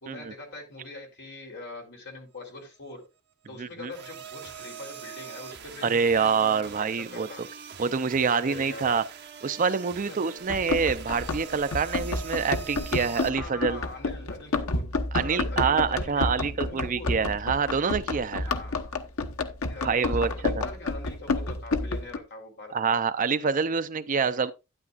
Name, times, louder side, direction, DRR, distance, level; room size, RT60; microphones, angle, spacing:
voice 1, 0.0-3.0 3.5-7.4 8.3-9.0 10.1-10.2 13.3-14.8 15.1-17.1 18.4-19.0 19.7-23.0, left 2 dB, 55° left, 3.9 m, -43 dB
voice 2, 3.6-3.9 5.8-7.3 7.8-9.0 9.4-13.8 15.1-18.5 19.8-20.6 22.7-24.5, right 5 dB, 35° right, 0.5 m, -26 dB
sound 1, 3.9-13.3, right 7 dB, 50° right, 1.4 m, -43 dB
Run, 10.5-22.2, left 3 dB, 80° left, 1.1 m, -30 dB
12.0 x 9.7 x 2.5 m
head